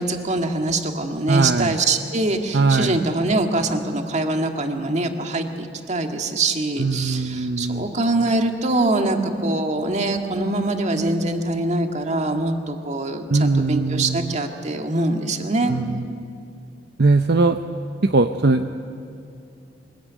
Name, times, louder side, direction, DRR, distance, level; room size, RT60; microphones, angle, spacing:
voice 1, 0.0-15.7, right 2 dB, 40° right, 4 dB, 1.9 m, -23 dB
voice 2, 1.3-1.7 2.5-3.0 6.8-7.8 13.3-14.3 15.7-16.0 17.0-17.6 18.0-18.7, right 3 dB, 60° right, 7 dB, 0.7 m, -20 dB
24.0 x 21.0 x 9.4 m, 2.5 s
head